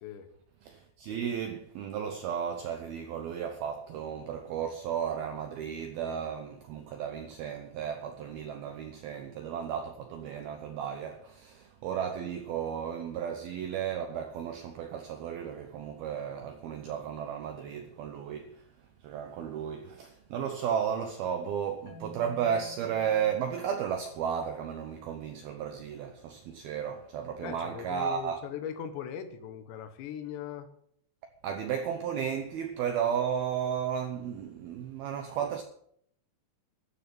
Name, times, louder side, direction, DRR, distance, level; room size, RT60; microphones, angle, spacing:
voice 1, 0.6-18.6 19.0-28.4 31.4-35.6, right 8 dB, 85° right, 2.1 m, -34 dB
Marimba xylophone, 21.9-24.8, equal, 20° left, 2.4 m, -53 dB
voice 2, 27.4-30.7, left 8 dB, 70° left, 3.3 m, -39 dB
13.0 x 7.6 x 8.5 m
omnidirectional pair, 5.8 m